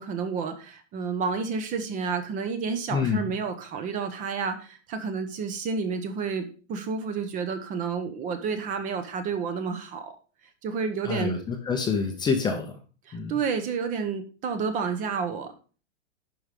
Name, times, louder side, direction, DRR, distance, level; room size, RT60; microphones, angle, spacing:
voice 1, 0.0-10.1 10.6-11.4 13.1-15.5, right 5 dB, 20° right, 8 dB, 0.9 m, -30 dB
voice 2, 2.9-3.3 11.0-12.8 13.1-13.3, left 5 dB, 10° left, 4 dB, 0.8 m, -27 dB
11.0 x 4.8 x 5.1 m, 0.37 s
supercardioid pair, 165°, 35 cm